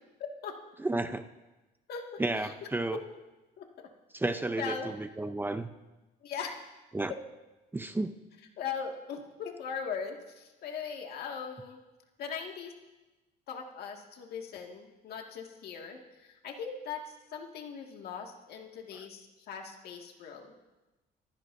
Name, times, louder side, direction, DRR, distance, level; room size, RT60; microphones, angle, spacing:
voice 1, 0.8-1.2 2.2-3.0 4.1-5.7 6.9-7.1 7.7-8.1, right 2 dB, 10° right, 8 dB, 0.7 m, -32 dB
voice 2, 1.9-2.5 2.9-3.0 3.6-3.9 4.6-4.9 6.2-6.5 8.6-11.8 12.2-12.7 13.5-20.5, left 6 dB, 70° left, 2 dB, 2.1 m, -40 dB
26.0 x 15.0 x 2.7 m, 1.1 s
cardioid pair, 110°, 17 cm